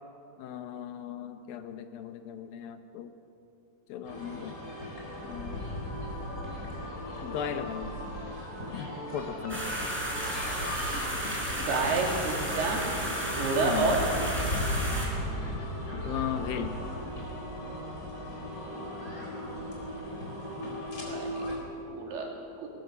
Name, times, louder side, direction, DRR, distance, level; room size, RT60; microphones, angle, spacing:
voice 1, 0.4-3.1 3.9-4.6 5.2-5.6 7.2-8.0 8.7-9.7 11.2-11.4 13.6-13.9 15.9-16.8, left 9 dB, 75° left, 8 dB, 2.4 m, -37 dB
sound 1, 4.0-21.6, left 1 dB, 20° left, 3.9 m, -37 dB
sound 2, 9.5-15.1, equal, 5° right, 4.0 m, -33 dB
voice 2, 11.5-12.8 13.3-14.0 19.7-20.3 21.0-21.4 21.9-22.3 22.6-22.7, right 4 dB, 80° right, 0 dB, 4.6 m, -30 dB
20.0 x 18.5 x 7.0 m, 2.8 s
omnidirectional pair, 4.6 m